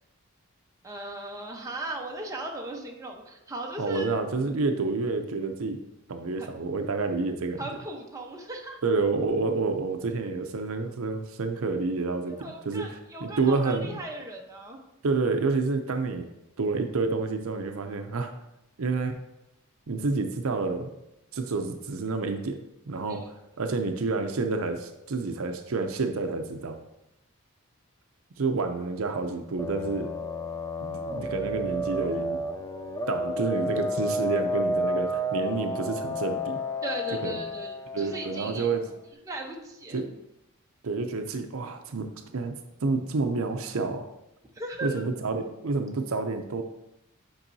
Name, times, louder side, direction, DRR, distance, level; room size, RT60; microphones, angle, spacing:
voice 1, 0.8-4.1 6.4-6.5 7.6-8.8 12.3-14.8 23.1-23.3 36.8-38.7 39.2-40.0 44.5-45.0, right 1 dB, 15° right, 0 dB, 0.9 m, -37 dB
voice 2, 3.8-5.8 6.1-7.6 8.8-12.9 13.2-14.0 15.0-16.3 16.6-18.3 18.8-19.2 19.9-20.9 21.3-22.6 22.9-23.2 23.6-26.8 28.4-30.1 30.8-32.4 33.1-36.6 37.2-37.4 37.9-38.8 39.9-40.2 40.8-42.1 42.3-44.0 44.8-46.6, right 3 dB, 70° right, 6 dB, 0.6 m, -29 dB
sound 1, 29.6-38.8, equal, 15° left, 0.3 m, -31 dB
8.7 x 5.4 x 2.7 m, 0.88 s
head